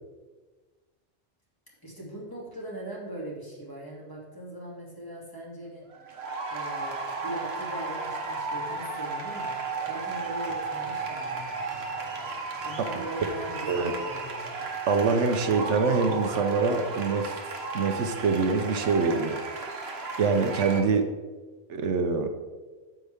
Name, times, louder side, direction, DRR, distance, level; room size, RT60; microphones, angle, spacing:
voice 1, 1.8-5.9 6.5-9.6 9.8-11.5 12.6-14.6, right 1 dB, 20° left, -5 dB, 2.3 m, -40 dB
sound 1, 5.8-20.8, right 3 dB, 65° right, 1.3 m, -34 dB
voice 2, 14.9-17.4 17.7-19.4 20.2-21.1 21.7-22.3, right 4 dB, 85° right, 7 dB, 1.1 m, -25 dB
9.5 x 7.5 x 3.4 m, 1.3 s
omnidirectional pair, 1.2 m